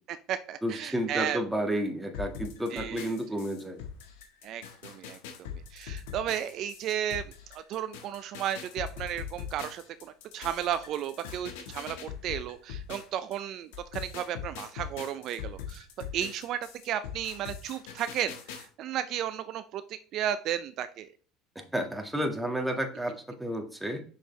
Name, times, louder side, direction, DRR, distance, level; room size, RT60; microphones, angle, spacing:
voice 1, 0.1-1.4 2.7-3.1 4.4-7.2 7.5-15.9 16.1-21.1, right 10 dB, 55° right, 12 dB, 0.5 m, -34 dB
voice 2, 0.6-3.8 21.6-24.0, equal, 5° right, 4 dB, 1.7 m, -31 dB
sound 1, 2.1-13.4 13.7-18.7, left 8 dB, 80° left, 1.5 m, -42 dB
6.6 x 6.4 x 3.2 m, 0.43 s
supercardioid pair, 90°, 0 cm